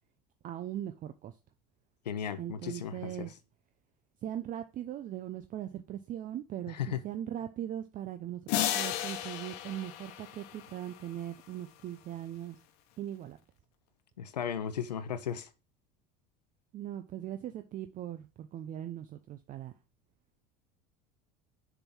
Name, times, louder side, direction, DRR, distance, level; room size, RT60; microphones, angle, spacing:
voice 1, 0.4-1.3 2.4-3.3 4.2-12.6 13.0-13.4 16.7-19.7, right 11 dB, 40° right, 0.7 m, -40 dB
voice 2, 2.1-3.3 6.7-7.0 14.2-15.5, left 8 dB, 85° left, 0.7 m, -35 dB
sound 1, 8.5-11.0, left 11 dB, 60° left, 1.1 m, -34 dB
6.8 x 3.7 x 5.9 m
hypercardioid pair, 70°, 21 cm